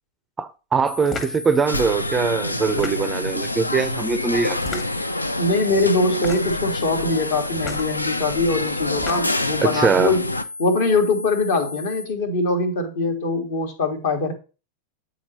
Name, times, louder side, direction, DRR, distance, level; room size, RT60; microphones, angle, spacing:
voice 1, 0.4-4.8 9.6-10.2, right 5 dB, 15° right, 0.4 m, -22 dB
sound 1, 0.8-12.1, left 3 dB, 85° right, 0.4 m, -36 dB
sound 2, 1.1-1.4 2.6-3.3 4.5-5.1 6.1-6.6 7.6-7.9 8.8-9.5, left 4 dB, 30° left, 1.1 m, -33 dB
sound 3, 1.7-10.4, left 1 dB, 85° left, 0.3 m, -27 dB
voice 2, 5.4-10.3 10.6-14.3, left 3 dB, 55° left, 1.1 m, -22 dB
8.6 x 4.0 x 2.8 m
figure-of-eight pair, 90°, 0 cm